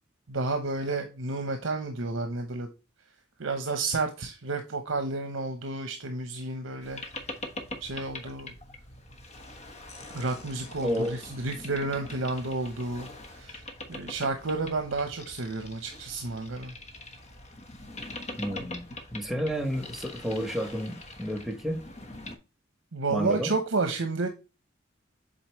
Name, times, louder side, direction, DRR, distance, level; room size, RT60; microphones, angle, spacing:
voice 1, 0.3-2.7 3.4-7.0 7.8-8.5 10.1-13.6 13.9-16.7 22.9-24.3, right 3 dB, 85° right, 0.9 m, -31 dB
Boat Water vehicle, 6.8-22.4, left 2 dB, 35° left, 1.2 m, -43 dB
voice 2, 10.8-11.2 18.4-21.8 23.1-23.5, equal, ahead, 1.0 m, -31 dB
7.8 x 4.1 x 3.1 m
head